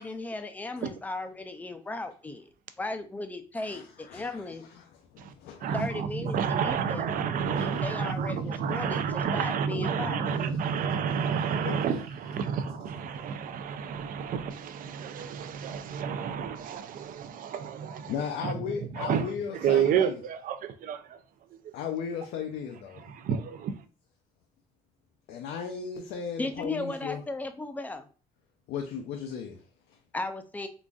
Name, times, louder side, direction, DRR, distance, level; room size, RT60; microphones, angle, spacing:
voice 1, 0.0-2.5 2.8-4.6 5.7-6.4 6.6-7.2 7.6-10.3 26.4-28.1 30.1-30.7, left 2 dB, 10° left, 0.4 m, -36 dB
voice 2, 3.6-5.8 7.5-7.6 8.3-8.7 10.3-11.8 12.7-12.8 13.1-13.2 18.1-20.2 21.7-23.1 25.3-27.2 28.7-30.0, left 7 dB, 75° left, 0.5 m, -37 dB
voice 3, 5.6-18.1 18.4-21.2 21.5-21.7 23.0-23.8, right 7 dB, 55° right, 0.4 m, -30 dB
3.8 x 2.5 x 2.3 m
cardioid pair, 110°, 17 cm